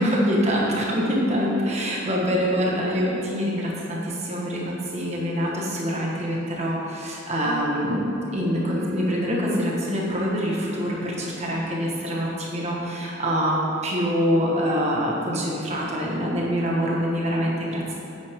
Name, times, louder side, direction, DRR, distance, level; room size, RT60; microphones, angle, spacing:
voice 1, 0.0-17.9, equal, 30° right, -3 dB, 1.4 m, -25 dB
sound 1, 7.4-13.8, right 4 dB, 70° left, 1.3 m, -44 dB
8.9 x 8.9 x 3.7 m, 2.9 s
head